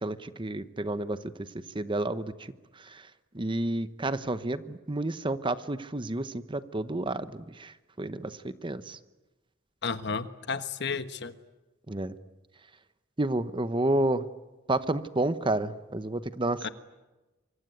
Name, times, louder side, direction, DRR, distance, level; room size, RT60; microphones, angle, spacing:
voice 1, 0.0-1.2 1.7-2.3 3.3-7.7 8.0-8.4 8.6-9.0 11.9-12.1 13.2-14.2 14.7-16.7, right 2 dB, 25° right, 1.0 m, -30 dB
voice 2, 9.8-11.3 16.6-16.7, left 5 dB, 60° left, 1.3 m, -32 dB
25.0 x 24.5 x 9.3 m
head